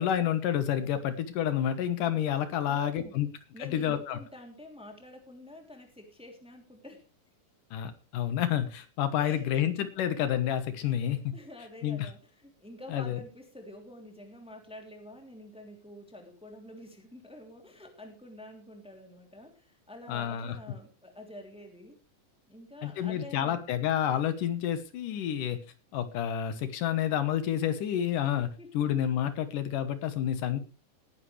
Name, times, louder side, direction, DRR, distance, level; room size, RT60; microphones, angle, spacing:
voice 1, 0.0-3.3 3.6-4.2 7.7-11.3 11.8-12.1 12.9-13.2 20.1-20.6 22.8-25.6 25.9-28.5 28.7-30.6, left 10 dB, 75° left, 10 dB, 2.8 m, -29 dB
voice 2, 2.7-3.2 3.5-7.0 9.2-9.6 10.8-22.0 22.5-23.7 28.6-28.7 30.5-30.6, left 1 dB, ahead, 3 dB, 2.6 m, -48 dB
18.5 x 11.0 x 3.3 m, 0.30 s
omnidirectional pair, 3.9 m